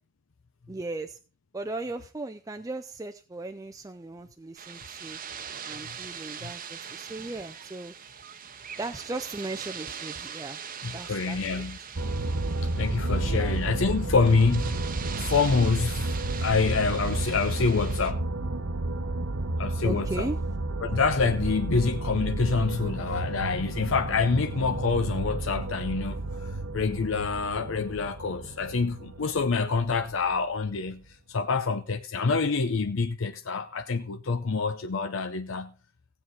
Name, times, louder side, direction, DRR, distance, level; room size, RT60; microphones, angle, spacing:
voice 1, 0.7-1.2 1.5-5.2 5.7-7.9 8.8-10.6 10.9-11.6 13.2-13.6 19.8-20.4, right 2 dB, 15° right, 0.4 m, -37 dB
sound 1, 4.6-18.1, right 7 dB, 40° right, 0.8 m, -41 dB
voice 2, 10.8-11.8 12.8-14.8 15.2-18.3 19.6-20.3 20.8-31.0 31.3-35.7, left 4 dB, 65° left, 0.6 m, -26 dB
sound 2, 12.0-30.7, right 2 dB, 65° right, 1.0 m, -32 dB
16.0 x 7.9 x 4.0 m
head